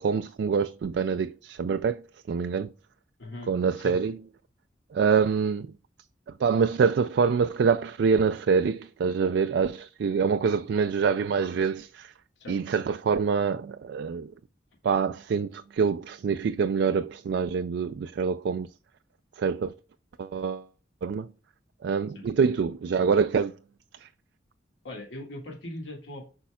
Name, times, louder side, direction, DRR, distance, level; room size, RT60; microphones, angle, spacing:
voice 1, 0.0-2.0 2.3-2.7 3.5-4.2 4.9-5.7 6.4-12.1 12.5-14.3 14.8-18.7 19.4-19.7 20.2-20.7 21.0-21.3 21.8-23.6 24.0-24.1, right 5 dB, 70° right, 0.3 m, -25 dB
voice 2, 24.8-26.2, left 1 dB, 85° left, 1.8 m, -39 dB
8.4 x 5.2 x 2.3 m
head